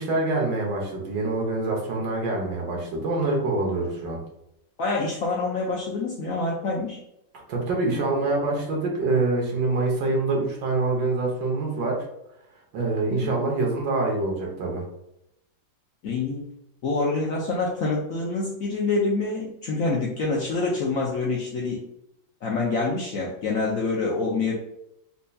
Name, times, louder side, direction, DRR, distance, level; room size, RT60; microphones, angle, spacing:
voice 1, 0.0-4.2 7.5-12.0 12.7-14.8, right 2 dB, 75° right, -1 dB, 1.6 m, -25 dB
voice 2, 4.8-7.0 13.1-13.3 16.0-16.4 16.8-21.8 22.4-24.5, left 3 dB, 70° left, -3 dB, 0.8 m, -26 dB
4.3 x 2.7 x 2.2 m, 0.81 s
omnidirectional pair, 2.0 m